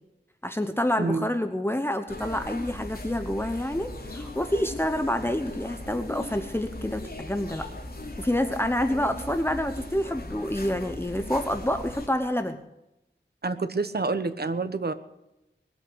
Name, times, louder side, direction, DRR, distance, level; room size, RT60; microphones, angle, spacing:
voice 1, 0.4-7.7 8.2-12.6, left 1 dB, 10° left, 8 dB, 1.0 m, -28 dB
sound 1, 2.1-12.1, left 2 dB, 50° left, 3.1 m, -38 dB
voice 2, 13.4-14.9, right 3 dB, 55° right, 11 dB, 1.2 m, -27 dB
20.5 x 8.1 x 8.0 m, 0.90 s
wide cardioid pair, 75°, 19 cm